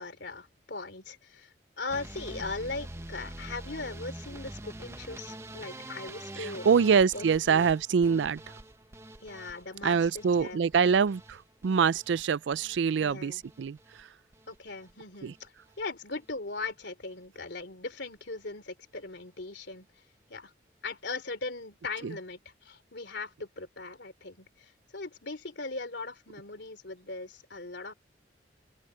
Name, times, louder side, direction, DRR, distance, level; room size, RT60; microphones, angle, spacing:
voice 1, 0.0-6.7 7.1-7.7 9.2-10.6 13.0-13.4 14.5-19.9 20.3-20.5 20.8-27.9, left 3 dB, 70° left, 3.0 m, -39 dB
sound 1, 1.9-14.0 14.3-14.9 15.2-15.8 16.1-16.4 16.7-16.8 17.0-17.1, right 1 dB, 15° right, 0.8 m, -45 dB
voice 2, 6.4-8.4 9.8-14.1 15.2-15.3 22.0-22.1, right 6 dB, 80° right, 0.4 m, -25 dB
open air
head